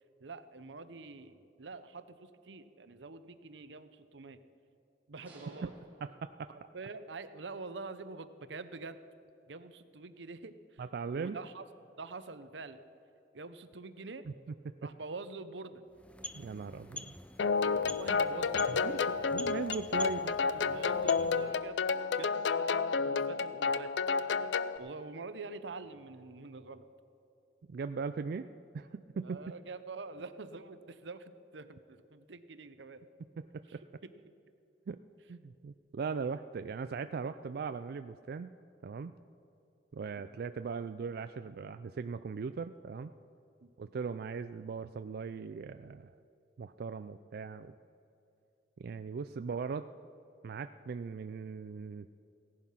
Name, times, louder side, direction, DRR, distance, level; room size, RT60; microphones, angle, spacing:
voice 1, 0.2-4.4 5.1-5.7 6.5-9.0 9.5-10.8 11.1-11.6 12.0-12.8 13.3-14.3 14.8-15.8 17.8-18.9 20.0-21.8 22.2-23.9 24.8-26.8 29.2-33.0 33.7-33.8 43.6-43.7, right 3 dB, 90° right, 12 dB, 0.8 m, -46 dB
sound 1, 5.2-7.1, right 1 dB, 10° right, 2.7 m, -57 dB
voice 2, 6.0-6.5 10.8-11.4 14.3-14.4 14.7-14.9 16.4-17.1 18.8-21.1 27.7-28.5 28.7-29.4 33.4-33.8 34.9-35.0 35.3-38.5 38.8-39.1 39.9-43.1 43.8-46.1 46.6-47.7 48.8-49.9 50.4-52.1, right 5 dB, 60° right, 10 dB, 0.4 m, -39 dB
sound 2, 15.9-21.7, left 2 dB, 5° left, 0.4 m, -47 dB
sound 3, 17.4-24.8, left 5 dB, 85° left, 0.5 m, -31 dB
16.5 x 11.0 x 5.7 m, 2.8 s
head